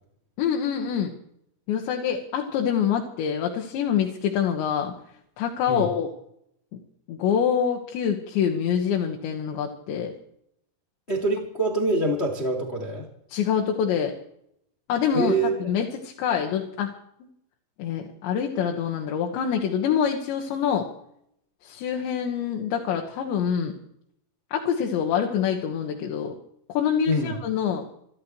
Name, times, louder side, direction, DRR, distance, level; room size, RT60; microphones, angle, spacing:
voice 1, 0.4-1.1 1.7-4.9 5.4-6.1 7.1-10.1 13.3-14.1 14.9-15.3 15.6-16.9 17.8-20.9 21.6-23.7 24.5-26.3 26.7-27.9, left 8 dB, 75° left, 1 dB, 3.8 m, -25 dB
voice 2, 11.1-13.0 15.1-15.7 27.1-27.3, right 1 dB, 30° left, 2 dB, 1.2 m, -25 dB
28.0 x 12.5 x 3.1 m, 0.72 s
omnidirectional pair, 5.3 m